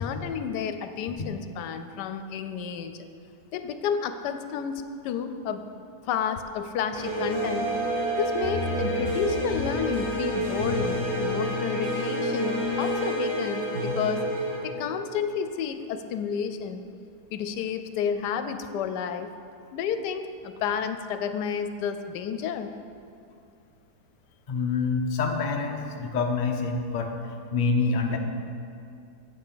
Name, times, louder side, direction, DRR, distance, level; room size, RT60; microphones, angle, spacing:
voice 1, 0.0-3.0 3.5-5.6 6.0-7.7 8.2-14.3 14.6-16.8 17.3-19.3 19.7-22.7, left 7 dB, 85° left, 9 dB, 1.2 m, -31 dB
sound 1, 6.9-14.6, equal, 60° right, 2.8 m, -28 dB
voice 2, 24.5-27.1 27.5-28.2, left 4 dB, 45° left, 3 dB, 0.6 m, -26 dB
7.9 x 5.8 x 6.8 m, 2.5 s
omnidirectional pair, 1.8 m